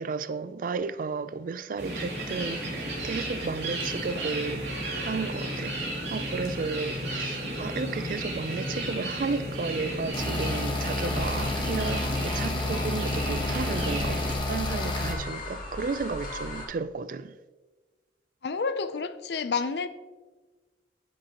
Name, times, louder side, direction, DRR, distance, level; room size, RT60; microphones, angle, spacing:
voice 1, 0.0-4.7 5.0-5.8 6.1-17.4, right 4 dB, 50° right, 0.3 m, -33 dB
sound 1, 1.8-14.3, right 1 dB, 80° right, 2.6 m, -33 dB
sound 2, 10.1-15.1, left 2 dB, 25° left, 1.2 m, -30 dB
sound 3, 11.0-16.7, left 2 dB, 50° left, 2.2 m, -40 dB
voice 2, 18.4-19.9, left 5 dB, 65° left, 0.5 m, -29 dB
9.8 x 8.9 x 2.9 m
head